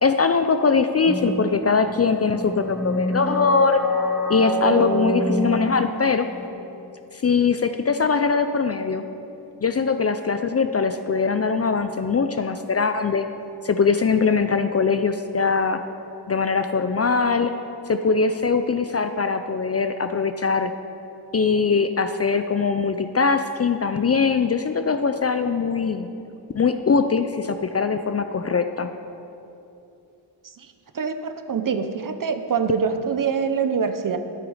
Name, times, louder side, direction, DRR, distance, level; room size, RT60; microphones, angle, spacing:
voice 1, 0.0-3.8 4.3-6.3 7.1-9.0 9.6-13.3 13.6-15.8 16.3-17.5 17.9-20.7 21.3-26.1 26.5-28.9, left 5 dB, 35° left, 9 dB, 0.4 m, -21 dB
sound 1, 1.1-6.5, equal, ahead, 1.2 m, -27 dB
voice 2, 30.9-34.2, right 6 dB, 45° right, 8 dB, 0.7 m, -24 dB
12.0 x 9.0 x 4.9 m, 2.8 s
wide cardioid pair, 125°, 45 cm